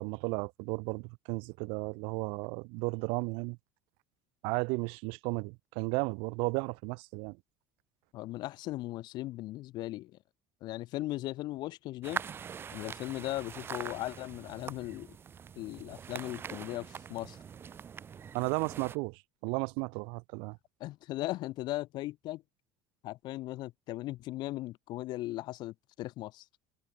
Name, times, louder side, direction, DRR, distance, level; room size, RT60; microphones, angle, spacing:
voice 1, 0.0-3.6 4.4-7.4 18.3-20.6, right 32 dB, 80° right, 3.7 m, -34 dB
voice 2, 8.1-10.2 10.6-12.2 12.7-15.1 15.6-17.4 20.8-22.4 23.0-26.4, left 17 dB, 55° left, 6.4 m, -38 dB
sound 1, 12.0-19.0, right 7 dB, 25° right, 3.2 m, -43 dB
cardioid pair, 160°, 9 cm